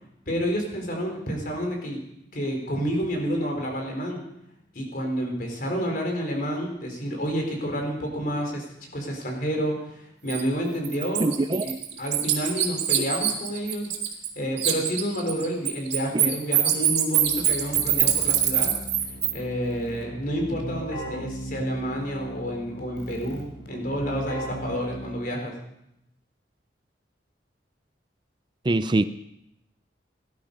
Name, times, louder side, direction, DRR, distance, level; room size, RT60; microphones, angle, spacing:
voice 1, 0.3-2.0 2.3-4.2 4.7-11.3 11.6-13.9 14.4-18.7 19.3-25.5, equal, 50° left, 2 dB, 4.2 m, -29 dB
Bird, 10.3-10.4 10.8-14.3 14.6-19.3, right 11 dB, 75° right, 2.4 m, -23 dB
voice 2, 11.2-11.8 28.6-29.0, right 2 dB, 25° right, 12 dB, 0.4 m, -23 dB
Keyboard (musical), 17.2-25.5, equal, 75° left, 3.3 m, -38 dB
18.0 x 12.0 x 5.3 m, 0.82 s
head